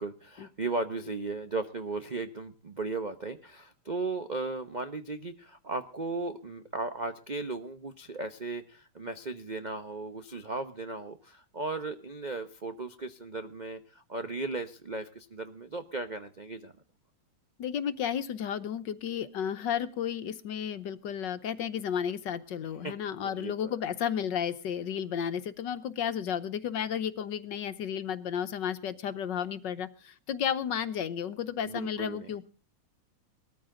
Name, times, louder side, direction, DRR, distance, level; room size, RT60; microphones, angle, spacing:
voice 1, 0.0-16.7 22.8-22.9 23.2-23.7 31.6-32.3, right 3 dB, 65° right, 9 dB, 0.4 m, -36 dB
voice 2, 17.6-32.4, left 8 dB, 65° left, 12 dB, 1.4 m, -33 dB
20.0 x 14.0 x 3.8 m, 0.37 s
omnidirectional pair, 2.4 m